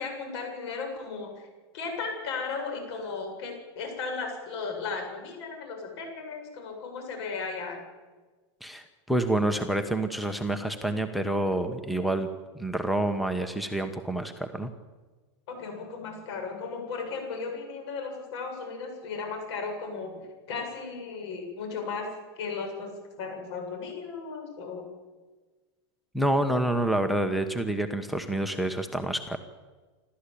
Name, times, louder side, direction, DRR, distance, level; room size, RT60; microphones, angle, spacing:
voice 1, 0.0-1.5 1.7-7.8 15.5-20.1 20.5-22.1 22.4-22.9 23.2-24.9, left 4 dB, 70° left, 4 dB, 7.8 m, -35 dB
voice 2, 8.6-12.3 12.6-14.7 26.1-29.4, right 1 dB, ahead, 8 dB, 1.2 m, -28 dB
28.0 x 13.5 x 8.6 m, 1.3 s
supercardioid pair, 140°, 15 cm